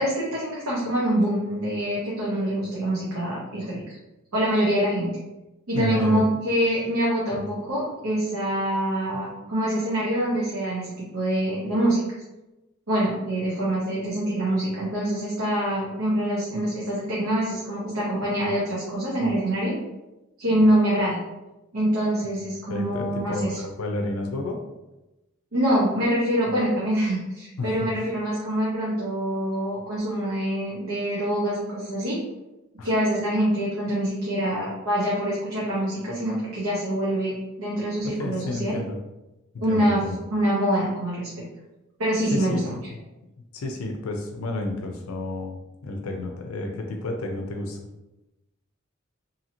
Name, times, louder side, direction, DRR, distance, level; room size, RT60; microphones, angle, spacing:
voice 1, 0.0-3.8 4.3-5.1 5.7-12.0 12.9-19.7 20.4-21.2 21.7-23.6 25.5-32.2 32.8-38.8 39.6-40.0 40.3-41.3 42.0-42.7, right 1 dB, 85° right, -6 dB, 0.8 m, -25 dB
voice 2, 5.7-6.3 7.3-7.4 22.7-24.6 27.6-28.1 32.8-32.9 38.0-39.0 39.7-40.2 42.3-43.0 43.5-47.8, left 2 dB, 85° left, 3 dB, 0.4 m, -31 dB
2.7 x 2.6 x 2.8 m, 1.0 s
head